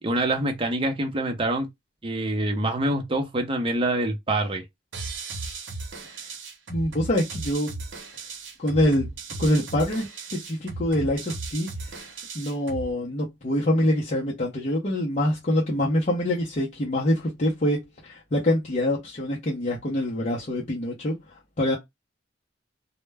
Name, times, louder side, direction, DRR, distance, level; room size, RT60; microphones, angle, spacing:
voice 1, 0.0-1.7 2.0-4.6, right 1 dB, 30° right, 0.6 m, -25 dB
sound 1, 4.9-12.9, right 3 dB, 90° right, 0.7 m, -36 dB
voice 2, 6.7-7.8 8.6-9.1 9.4-10.1 10.3-12.0 12.3-21.8, left 1 dB, 40° left, 0.6 m, -25 dB
2.1 x 2.1 x 3.3 m
head